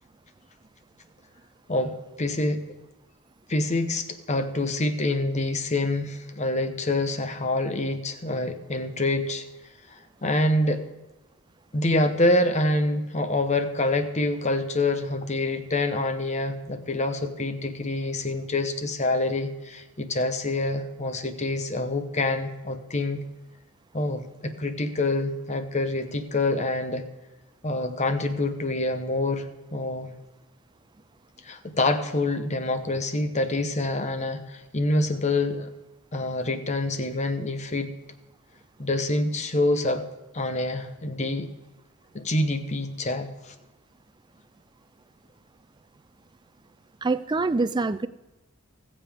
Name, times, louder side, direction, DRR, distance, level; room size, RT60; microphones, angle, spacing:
voice 1, 1.7-2.6 3.5-9.5 9.9-10.8 11.7-23.2 23.9-27.0 27.6-30.1 31.4-35.7 36.1-37.9 38.8-40.0 40.3-41.5 42.1-43.5, left 2 dB, 30° left, 8 dB, 0.9 m, -26 dB
voice 2, 47.0-48.1, right 3 dB, 20° right, 14 dB, 0.3 m, -25 dB
20.5 x 7.5 x 3.5 m, 1.1 s
head